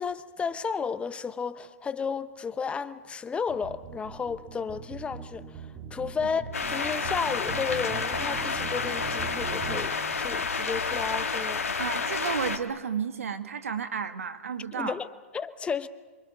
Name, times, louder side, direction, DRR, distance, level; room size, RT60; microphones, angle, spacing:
voice 1, 0.0-6.4 6.7-11.7 14.7-15.1 15.3-15.9, left 6 dB, 15° left, 1.0 m, -33 dB
sound 1, 3.5-9.9, right 6 dB, 30° right, 3.3 m, -41 dB
sound 2, 6.5-12.6, left 4 dB, 90° left, 2.2 m, -30 dB
voice 2, 11.8-15.0, right 7 dB, 80° right, 2.0 m, -32 dB
27.5 x 24.0 x 6.3 m
hypercardioid pair, 120°, 7 cm